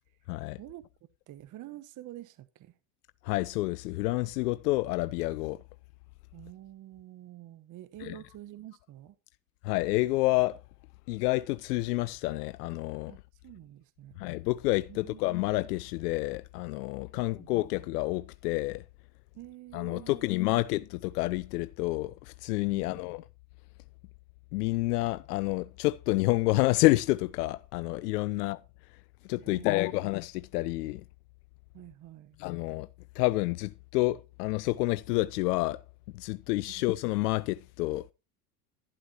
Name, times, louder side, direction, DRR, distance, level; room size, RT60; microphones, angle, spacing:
voice 1, 0.3-0.6 3.2-5.6 8.0-8.2 9.6-10.6 11.1-13.2 14.2-18.8 19.7-23.2 24.5-28.6 29.3-31.0 32.4-32.9 33.1-35.8 36.1-38.1, left 20 dB, 70° left, 0.6 m, -29 dB
voice 2, 1.3-2.7 6.3-9.2 13.1-14.3 14.9-15.2 17.1-17.5 19.3-20.6 22.7-23.0 29.4-29.8 31.7-32.4 36.7-36.9, right 14 dB, 40° right, 1.0 m, -48 dB
12.0 x 11.0 x 2.9 m
hypercardioid pair, 90°, 48 cm